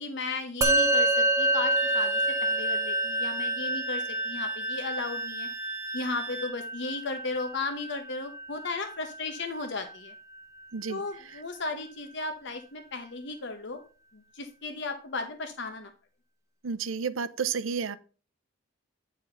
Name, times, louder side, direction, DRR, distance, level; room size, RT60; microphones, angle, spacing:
voice 1, 0.0-5.5 5.9-10.1 10.9-13.8 14.1-15.9, left 3 dB, 60° left, 0.9 m, -35 dB
Musical instrument, 0.6-10.1, right 1 dB, 15° right, 1.1 m, -28 dB
Wind instrument woodwind instrument, 1.7-6.5, right 5 dB, 70° right, 1.3 m, -42 dB
voice 2, 16.6-18.0, right 6 dB, 85° right, 0.6 m, -31 dB
9.4 x 4.1 x 5.6 m
head